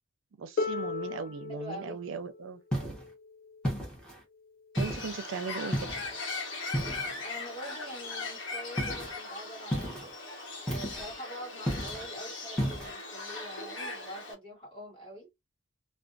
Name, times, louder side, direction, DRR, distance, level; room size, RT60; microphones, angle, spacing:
voice 1, 0.3-3.0 4.8-6.0, right 5 dB, 70° right, 0.4 m, -38 dB
Harp, 0.6-6.4 7.4-7.5, left 4 dB, 45° left, 0.5 m, -39 dB
voice 2, 1.3-2.0 7.2-10.1 10.7-15.3, equal, 25° left, 1.5 m, -45 dB
sound 1, 2.7-3.1 3.6-4.2 4.8-5.2 5.7-6.1 6.7-7.2 8.8-9.1 9.7-10.1 10.7-11.1 11.7-12.1 12.6-12.9, equal, 5° left, 0.8 m, -33 dB
Bird, 4.7-14.3, left 3 dB, 65° left, 1.0 m, -39 dB
2.4 x 2.2 x 2.5 m
head